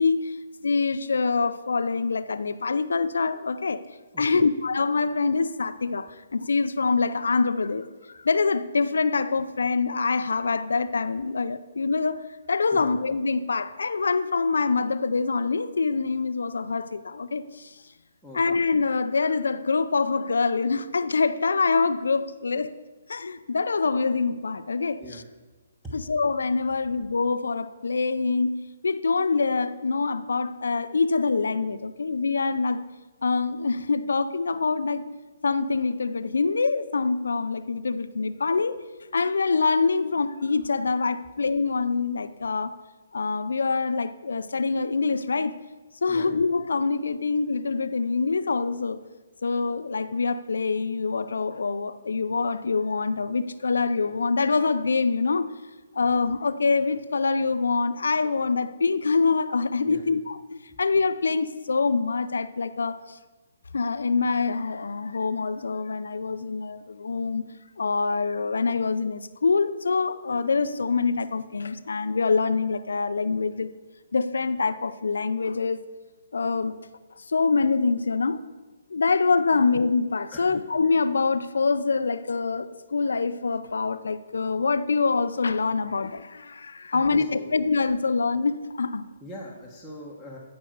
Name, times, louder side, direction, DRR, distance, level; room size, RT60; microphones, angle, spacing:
voice 1, 0.0-3.8 4.2-17.8 18.3-22.7 23.1-25.0 25.9-32.8 33.2-35.1 35.4-38.8 39.1-42.8 43.1-45.6 46.0-49.0 49.4-55.5 55.9-63.2 63.7-73.7 74.1-75.8 76.3-76.8 77.2-78.4 78.9-89.0, left 4 dB, 75° left, 0.5 m, -25 dB
voice 2, 4.1-4.5 12.7-12.9 18.2-18.4 25.0-25.2 25.8-25.9 46.1-46.3 59.8-60.0 60.7-60.8 79.5-79.6 80.3-80.6 86.9-87.5 89.2-90.4, equal, 5° right, 1.4 m, -41 dB
12.0 x 5.2 x 6.7 m
hypercardioid pair, 140°, 0 cm